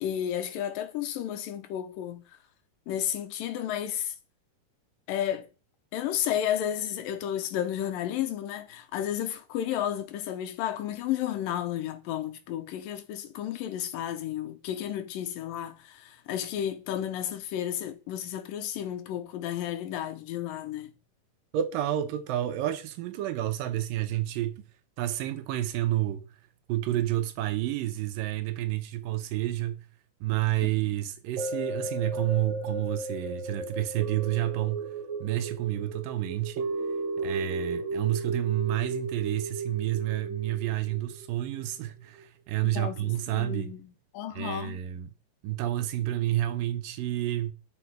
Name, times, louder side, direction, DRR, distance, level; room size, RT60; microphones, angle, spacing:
voice 1, 0.0-2.2 2.9-4.1 5.1-5.5 5.9-20.9 30.6-30.7 42.6-44.8, left 10 dB, 85° left, 2.7 m, -32 dB
voice 2, 21.5-24.6 25.0-26.2 26.7-29.9 30.2-34.9 35.2-36.7 37.2-43.7 44.3-45.1 45.4-47.5, right 14 dB, 90° right, 2.6 m, -30 dB
sound 1, 31.4-41.7 42.2-42.3, right 2 dB, 70° right, 1.1 m, -35 dB
12.0 x 4.5 x 4.7 m
omnidirectional pair, 3.9 m